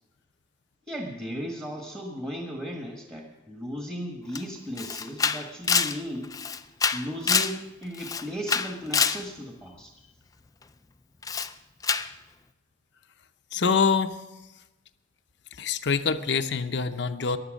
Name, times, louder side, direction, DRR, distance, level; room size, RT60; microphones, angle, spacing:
voice 1, 0.9-6.3 6.9-9.9, equal, 15° right, 1 dB, 1.4 m, -36 dB
Camera, 4.4-4.5 4.8-7.6 7.9-9.2 11.2-11.5 11.8-12.1, left 6 dB, 20° left, 0.4 m, -26 dB
voice 2, 13.5-14.2 15.6-17.4, left 5 dB, 60° left, 10 dB, 0.7 m, -25 dB
15.5 x 11.0 x 6.4 m, 1.1 s
head